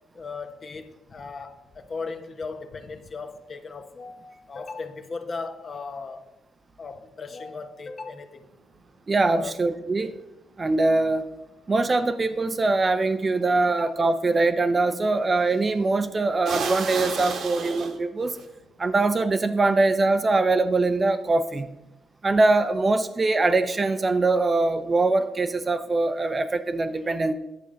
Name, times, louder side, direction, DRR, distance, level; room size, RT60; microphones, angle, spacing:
voice 1, 0.1-6.2 6.8-8.4 9.3-9.5 13.7-13.9, left 4 dB, 40° left, 1.0 m, -37 dB
voice 2, 9.1-10.2 10.6-11.2 11.7-18.4 18.8-21.7 22.2-27.3, right 3 dB, 30° right, 0.6 m, -22 dB
sound 1, 13.1-13.2 15.4-15.7 16.5-18.5, right 5 dB, 65° right, 1.4 m, -31 dB
9.5 x 7.1 x 5.1 m
cardioid pair, 90°, 0 cm